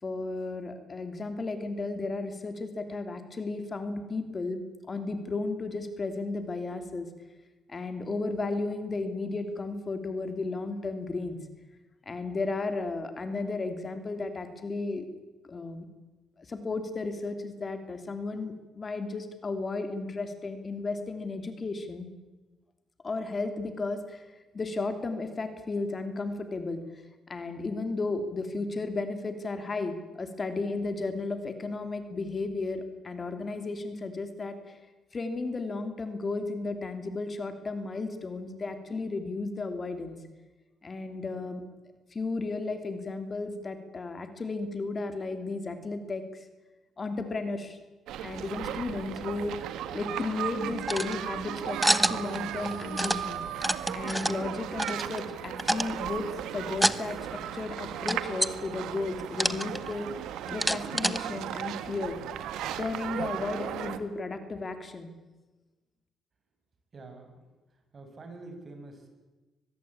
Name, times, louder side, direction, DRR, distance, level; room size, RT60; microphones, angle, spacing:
voice 1, 0.0-7.1 7.7-11.4 12.0-15.1 15.5-15.9 16.4-22.1 23.0-27.0 27.3-34.8 35.1-40.2 40.8-41.6 42.1-46.5 47.0-47.8 48.2-49.6 49.9-53.4 53.9-60.1 60.5-62.2 62.8-65.1, left 3 dB, 35° left, 8 dB, 3.0 m, -34 dB
sound 1, 48.1-64.0, right 10 dB, 85° right, 1.8 m, -36 dB
sound 2, 50.8-51.2 51.8-52.4 52.7-53.2 53.6-54.4 54.8-55.3 55.6-56.0 56.7-57.0 57.3-57.4 58.1-58.5 59.3-60.0 60.5-61.2, equal, ahead, 1.1 m, -27 dB
voice 2, 66.9-67.4 67.9-69.1, right 2 dB, 40° right, 5 dB, 6.9 m, -46 dB
24.0 x 20.5 x 8.8 m, 1.1 s
cardioid pair, 90°, 0 cm